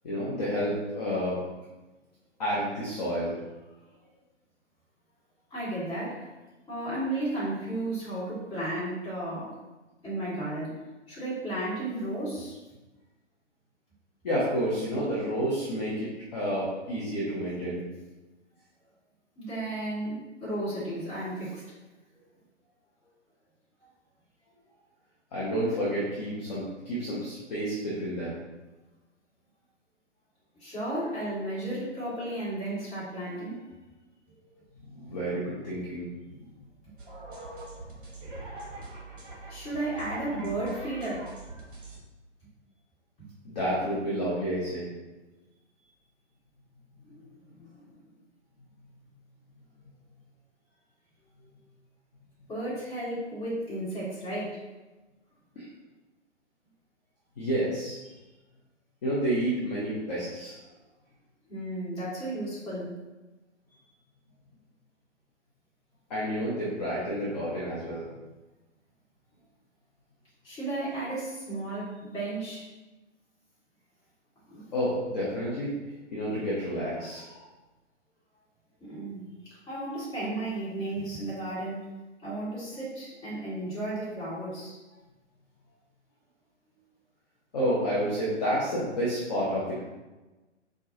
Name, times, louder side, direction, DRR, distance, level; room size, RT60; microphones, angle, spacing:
voice 1, 0.0-1.4 2.4-3.4 14.2-17.9 25.3-28.4 34.9-36.1 38.3-38.4 43.4-44.9 55.6-55.7 57.4-58.0 59.0-60.5 66.1-68.1 74.7-75.7 76.1-77.5 87.5-89.8, equal, 35° left, -8 dB, 0.8 m, -30 dB
voice 2, 5.5-6.3 6.7-9.5 10.0-10.7 11.1-12.6 19.4-21.6 30.6-33.6 39.5-41.2 43.2-43.3 47.0-47.8 52.5-54.5 61.5-62.9 70.4-72.6 74.5-74.6 78.8-81.8 82.2-84.7, right 1 dB, 10° left, -11 dB, 1.4 m, -34 dB
sound 1, 37.0-42.0, right 2 dB, 45° right, 1.0 m, -42 dB
4.4 x 2.3 x 2.7 m, 1.1 s
figure-of-eight pair, 130°, 37 cm